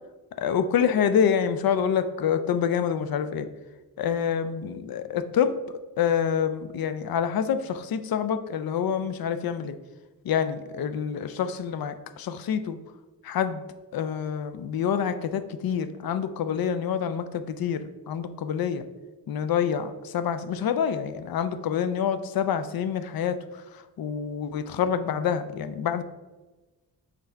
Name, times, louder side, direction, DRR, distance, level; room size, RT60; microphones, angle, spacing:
voice 1, 0.4-3.5 4.0-5.6 6.0-9.8 10.2-12.8 13.2-13.7 13.9-18.8 19.3-26.0, left 8 dB, 65° left, 11 dB, 0.5 m, -27 dB
5.7 x 3.8 x 4.4 m, 1.2 s
wide cardioid pair, 120°, 38 cm